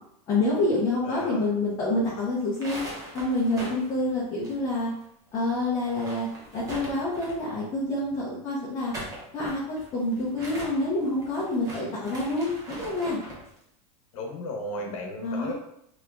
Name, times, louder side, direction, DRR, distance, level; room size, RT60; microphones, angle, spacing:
voice 1, 0.3-2.8 3.1-4.9 5.3-6.3 6.5-8.9 9.3-13.2 15.2-15.5, left 2 dB, 20° left, -7 dB, 0.7 m, -27 dB
voice 2, 1.0-1.5 14.1-15.5, left 1 dB, 55° left, 1 dB, 1.1 m, -35 dB
sound 1, 2.4-5.0 5.3-5.4 5.8-7.5 8.6-13.5, right 1 dB, 15° right, 0.7 m, -41 dB
3.6 x 2.9 x 3.4 m, 0.75 s
supercardioid pair, 175°, 21 cm